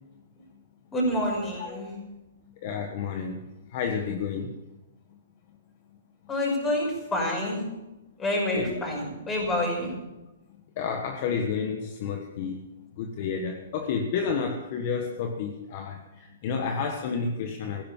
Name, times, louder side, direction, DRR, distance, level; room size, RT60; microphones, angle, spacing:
voice 1, 0.9-1.9 6.3-7.6 8.2-9.9, left 1 dB, 15° left, -1 dB, 6.2 m, -27 dB
voice 2, 2.6-3.4 3.7-4.6 8.5-8.8 10.8-12.6 13.0-17.8, left 6 dB, 45° left, 5 dB, 1.4 m, -30 dB
15.5 x 11.5 x 7.3 m, 1.0 s
hypercardioid pair, 150°, 0 cm